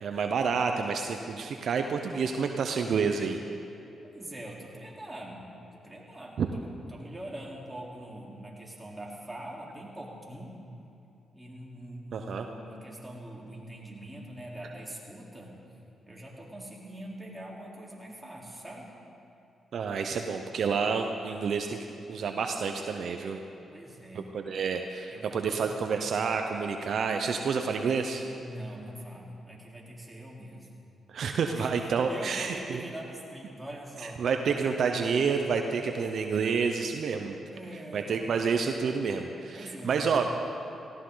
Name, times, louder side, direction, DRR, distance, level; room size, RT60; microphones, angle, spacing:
voice 1, 0.0-3.4 6.4-6.5 12.1-12.4 19.7-21.8 22.1-23.4 24.1-28.2 31.1-32.8 34.0-37.4 37.9-40.4, right 5 dB, 65° right, 5 dB, 0.8 m, -29 dB
voice 2, 4.0-5.4 5.7-6.6 6.9-10.6 11.3-15.6 16.1-18.9 20.8-21.0 23.7-24.3 25.1-25.9 28.4-30.7 31.5-34.3 37.5-38.4 39.5-40.1, right 1 dB, 15° right, -4 dB, 3.8 m, -43 dB
18.0 x 16.0 x 4.0 m, 2.8 s
supercardioid pair, 60°, 0 cm